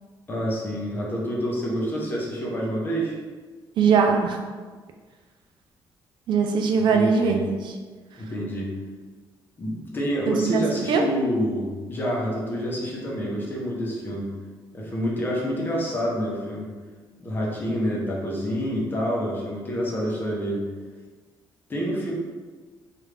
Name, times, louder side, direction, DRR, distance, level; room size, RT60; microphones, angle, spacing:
voice 1, 0.3-3.2 6.9-7.4 8.2-8.7 9.6-14.3 14.7-16.7 17.2-20.6 21.7-22.1, equal, 25° left, -3 dB, 0.7 m, -27 dB
voice 2, 3.8-4.4 6.3-7.7 10.3-11.0, right 5 dB, 65° right, 3 dB, 0.3 m, -21 dB
3.1 x 2.5 x 3.2 m, 1.4 s
cardioid pair, 135°, 9 cm